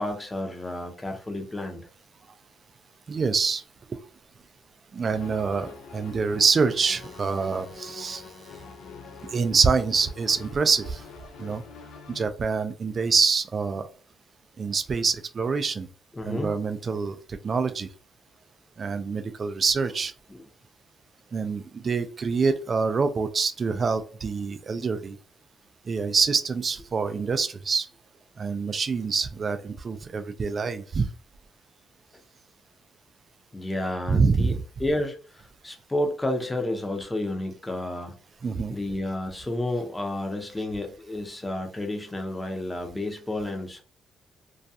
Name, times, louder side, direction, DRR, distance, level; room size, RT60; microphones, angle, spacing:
voice 1, 0.0-1.9 16.2-16.5 20.3-20.4 33.5-34.5 34.8-38.2 38.7-43.8, left 1 dB, 15° left, 4 dB, 0.6 m, -31 dB
voice 2, 3.1-3.6 4.9-8.2 9.3-11.0 11.4-11.6 12.1-13.8 14.6-15.9 16.3-17.9 18.8-20.1 21.3-25.2 25.9-27.9 28.4-31.1 34.1-34.6 38.4-38.8, right 5 dB, 40° right, 10 dB, 0.3 m, -25 dB
sound 1, 5.0-12.3, left 5 dB, 80° left, 0.5 m, -45 dB
2.3 x 2.2 x 2.6 m, 0.39 s
cardioid pair, 90°, 0 cm